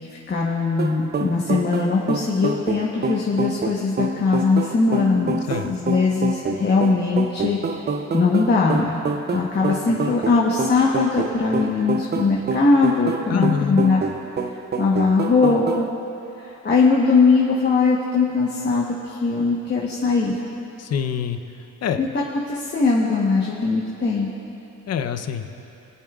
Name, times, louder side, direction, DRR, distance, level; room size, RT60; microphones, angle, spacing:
voice 1, 0.1-7.6 8.1-9.0 9.3-14.0 14.8-15.9 16.4-20.4 22.0-24.3, left 4 dB, 35° left, -4 dB, 1.2 m, -20 dB
sound 1, 0.8-15.9, right 3 dB, 35° right, 0.6 m, -27 dB
voice 2, 13.3-13.8 20.8-21.4 21.8-22.0 24.9-25.5, left 7 dB, 55° left, 7 dB, 0.8 m, -25 dB
23.0 x 8.6 x 2.4 m, 2.9 s
cardioid pair, 90°, 30 cm